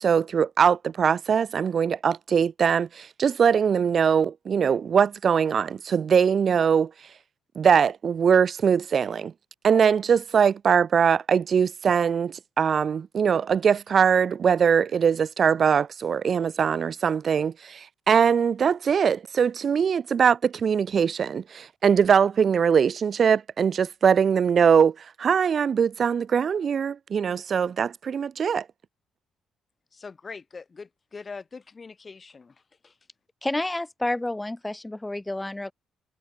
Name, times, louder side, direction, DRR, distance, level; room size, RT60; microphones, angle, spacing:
voice 1, 0.0-6.9 7.6-9.3 9.6-28.6, right 7 dB, 50° right, 0.4 m, -22 dB
voice 2, 29.9-33.0, left 4 dB, 35° left, 7.0 m, -42 dB
voice 3, 33.4-35.7, left 1 dB, 10° left, 0.6 m, -29 dB
cardioid pair, 90°, 0 cm